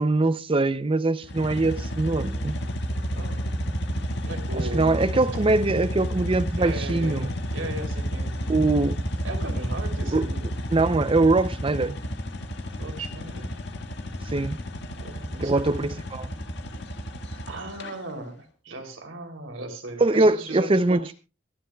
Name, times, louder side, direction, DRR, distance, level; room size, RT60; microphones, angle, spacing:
voice 1, 0.0-2.6 4.6-7.3 8.5-9.0 10.1-10.3 10.7-12.0 14.3-14.6 15.4-16.3 20.0-21.0, right 2 dB, 30° right, 0.5 m, -22 dB
sound 1, 1.2-17.9, equal, 60° left, 1.8 m, -31 dB
voice 2, 3.1-3.5 4.2-5.2 6.6-8.6 9.2-10.4 12.8-13.6 15.0-15.9 17.3-21.1, right 2 dB, 85° right, 3.2 m, -37 dB
24.0 x 11.5 x 2.3 m
head